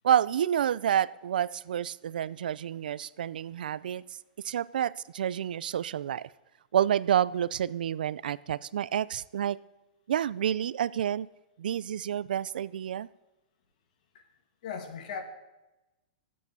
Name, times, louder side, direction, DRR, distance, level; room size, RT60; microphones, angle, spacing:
voice 1, 0.0-4.0 4.4-6.3 6.7-9.6 10.1-11.3 11.6-13.1, right 10 dB, 90° right, 20 dB, 0.4 m, -29 dB
voice 2, 14.6-15.2, left 6 dB, 60° left, 5 dB, 2.2 m, -37 dB
13.0 x 8.5 x 6.8 m, 1.0 s
supercardioid pair, 160°, 5 cm